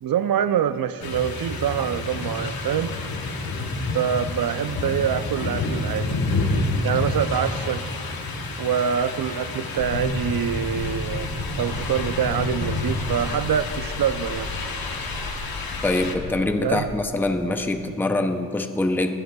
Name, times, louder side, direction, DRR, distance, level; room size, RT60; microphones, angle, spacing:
voice 1, 0.0-2.9 3.9-6.2 6.8-7.8 8.6-11.3 11.6-14.5 16.6-16.9, right 8 dB, 75° right, 13 dB, 0.5 m, -25 dB
sound 1, 1.0-16.2, left 2 dB, 75° left, 1.1 m, -29 dB
sound 2, 9.8-17.0, left 3 dB, 45° left, 0.8 m, -37 dB
voice 2, 15.8-19.2, left 2 dB, 5° left, 7 dB, 0.4 m, -24 dB
21.5 x 12.0 x 2.2 m, 2.5 s
wide cardioid pair, 150°, 36 cm